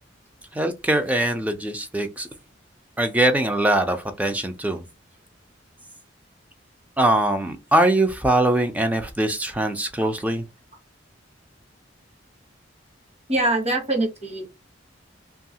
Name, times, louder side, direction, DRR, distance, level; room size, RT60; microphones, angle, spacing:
voice 1, 0.5-2.3 3.0-4.8 7.0-10.5, right 1 dB, 10° right, 0.4 m, -22 dB
voice 2, 13.3-14.5, right 2 dB, 35° right, 1.0 m, -23 dB
2.7 x 2.3 x 2.7 m
head